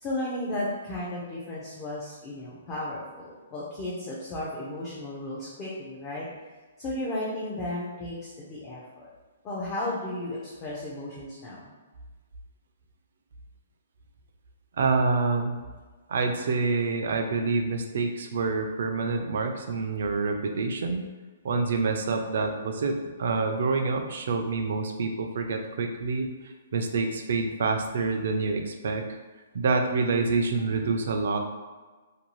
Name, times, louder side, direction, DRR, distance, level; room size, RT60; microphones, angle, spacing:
voice 1, 0.0-6.3 6.8-9.1 9.4-11.7, left 1 dB, 15° left, -7 dB, 0.4 m, -34 dB
voice 2, 14.8-15.6 16.1-21.1 21.4-26.3 26.7-29.0 29.5-31.4, right 4 dB, 55° right, 4 dB, 0.4 m, -27 dB
2.6 x 2.2 x 3.0 m, 1.3 s
hypercardioid pair, 175°, 0 cm